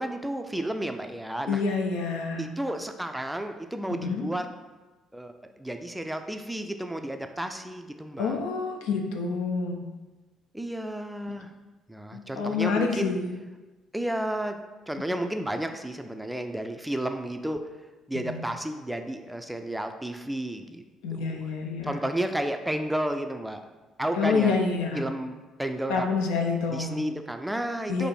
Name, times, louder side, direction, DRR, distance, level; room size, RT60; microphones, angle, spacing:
voice 1, 0.0-1.6 2.4-4.5 5.1-8.4 10.5-11.5 11.9-13.1 13.9-14.6 14.9-17.6 18.1-20.9 21.1-21.4 21.8-23.6 24.0-24.6 24.9-26.1 26.7-28.1, right 1 dB, 5° right, 6 dB, 0.4 m, -32 dB
voice 2, 1.5-2.4 3.9-4.3 8.2-9.8 12.1-13.4 18.1-18.4 21.0-22.0 24.2-25.1 25.9-27.0 27.9-28.1, left 4 dB, 70° left, 3 dB, 0.4 m, -28 dB
4.4 x 2.6 x 4.2 m, 1.2 s
figure-of-eight pair, 45°, 0 cm